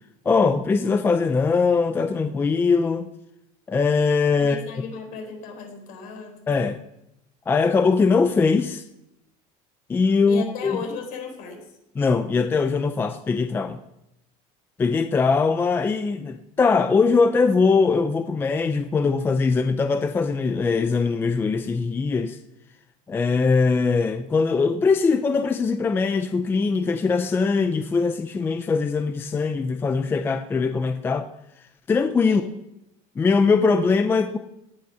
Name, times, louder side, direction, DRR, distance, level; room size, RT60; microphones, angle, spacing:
voice 1, 0.3-3.1 3.7-4.6 6.5-6.8 7.5-8.8 9.9-10.8 12.0-13.8 14.8-22.4 23.1-31.3 31.9-32.4 33.2-34.4, left 4 dB, 15° left, 0.4 m, -21 dB
voice 2, 4.4-6.4 10.3-11.6 32.2-32.5, left 5 dB, 65° left, 4.1 m, -35 dB
17.5 x 9.4 x 5.7 m
cardioid pair, 175°, 16 cm